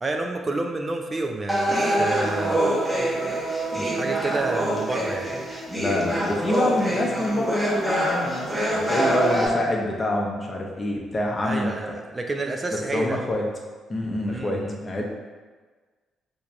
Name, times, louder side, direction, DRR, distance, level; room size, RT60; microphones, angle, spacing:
voice 1, 0.0-2.6 3.8-5.3 11.4-13.2 14.3-14.8, right 2 dB, 30° right, 3 dB, 0.4 m, -29 dB
sound 1, 1.5-9.5, right 1 dB, 10° right, 0.9 m, -25 dB
voice 2, 5.7-11.7 12.7-13.5 13.9-15.0, left 1 dB, 30° left, 0 dB, 0.7 m, -26 dB
5.6 x 2.6 x 2.2 m, 1.4 s
figure-of-eight pair, 40°, 0 cm